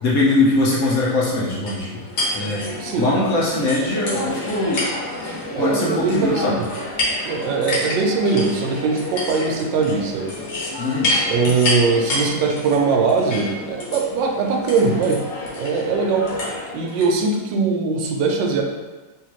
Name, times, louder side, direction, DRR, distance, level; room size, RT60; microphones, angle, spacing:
voice 1, 0.0-2.0 2.3-2.6 3.0-4.9 5.6-6.6 10.8-11.1, left 2 dB, 65° left, -5 dB, 1.0 m, -21 dB
sound 1, 1.7-17.1, left 2 dB, 80° left, 1.6 m, -28 dB
voice 2, 2.8-3.1 5.5-6.6 7.2-10.4 11.3-15.2 15.6-16.3 16.7-18.6, right 4 dB, 80° right, 1 dB, 1.3 m, -21 dB
3.7 x 2.8 x 2.9 m, 1.2 s
omnidirectional pair, 2.0 m